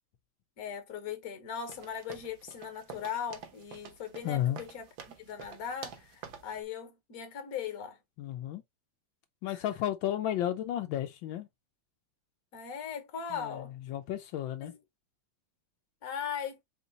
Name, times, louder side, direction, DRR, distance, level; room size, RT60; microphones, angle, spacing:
voice 1, 0.6-8.0 9.5-9.6 12.5-13.7 14.6-14.8 16.0-16.6, left 7 dB, 55° left, 1.5 m, -39 dB
sound 1, 1.6-6.6, right 7 dB, 85° right, 1.7 m, -48 dB
voice 2, 4.2-4.6 8.2-8.6 9.4-11.5 13.3-14.7, left 12 dB, 80° left, 1.4 m, -33 dB
4.4 x 2.8 x 4.0 m
omnidirectional pair, 2.1 m